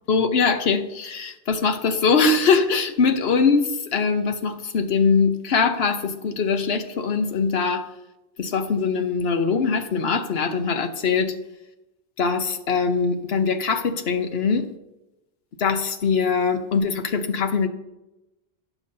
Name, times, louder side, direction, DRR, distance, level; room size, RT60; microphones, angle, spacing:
voice 1, 0.1-7.9 8.4-11.3 12.2-14.7 15.6-17.7, left 5 dB, 70° left, 7 dB, 1.1 m, -22 dB
18.0 x 7.1 x 2.8 m, 0.97 s
omnidirectional pair, 1.1 m